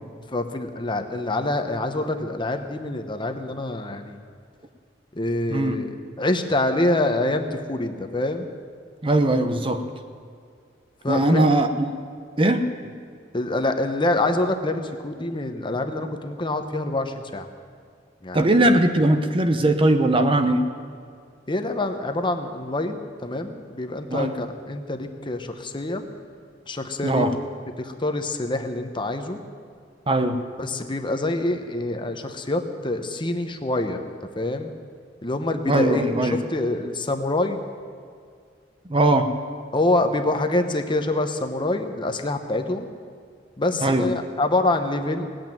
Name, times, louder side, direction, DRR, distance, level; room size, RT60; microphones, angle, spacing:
voice 1, 0.3-4.2 5.1-8.5 11.0-11.5 13.3-17.5 18.2-18.5 21.5-26.0 26.7-27.3 27.8-29.4 30.6-34.0 34.4-34.7 35.2-36.1 36.5-37.6 39.7-42.9 43.6-45.3, left 2 dB, 25° left, 6 dB, 0.9 m, -26 dB
voice 2, 9.0-9.8 11.1-11.9 12.4-12.7 18.3-20.7 24.1-24.3 27.0-27.3 30.1-30.4 35.7-36.4 38.9-39.3 43.8-44.1, right 1 dB, 30° right, 7 dB, 0.8 m, -20 dB
18.5 x 8.5 x 9.0 m, 2.2 s
head